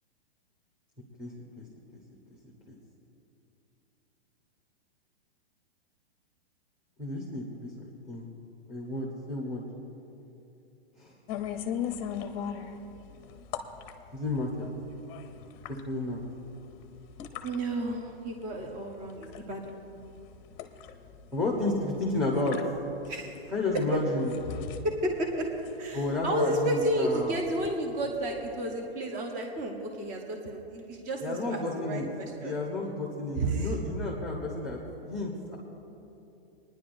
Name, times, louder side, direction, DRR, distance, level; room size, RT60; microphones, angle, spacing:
voice 1, 1.2-1.7 1.9-2.0 2.7-2.8 7.0-7.7 8.1-8.3 8.7-9.6 11.0-11.1 14.1-14.7 15.7-16.2 21.3-22.6 23.5-24.3 25.9-27.3 31.2-32.1 32.4-34.8 35.0-35.6, left 2 dB, 5° right, -2 dB, 1.0 m, -31 dB
sound 1, 11.3-28.8, left 8 dB, 35° left, 0.7 m, -41 dB
voice 2, 17.4-19.8 23.1-23.4 23.9-24.0 24.8-25.5 25.8-32.5 33.4-33.7, right 1 dB, 25° right, 2 dB, 1.0 m, -32 dB
25.0 x 10.0 x 2.6 m, 2.8 s
hypercardioid pair, 140°, 31 cm